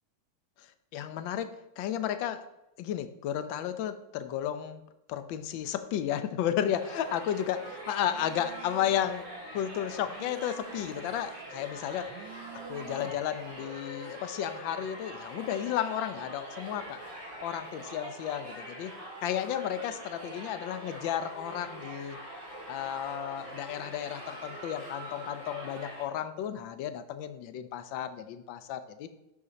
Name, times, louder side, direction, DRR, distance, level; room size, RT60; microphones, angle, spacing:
voice 1, 0.6-2.4 2.8-4.8 5.1-9.3 9.5-12.1 12.7-17.0 17.4-18.9 19.2-22.2 22.7-29.1, left 10 dB, 70° left, 10 dB, 1.4 m, -33 dB
Crowd, 6.8-26.0, equal, 25° right, 4.1 m, -44 dB
Telephone, 8.0-9.3 9.6-11.3 11.9-13.4, right 12 dB, 80° right, 1.4 m, -51 dB
12.5 x 5.1 x 4.1 m, 0.90 s
omnidirectional pair, 2.3 m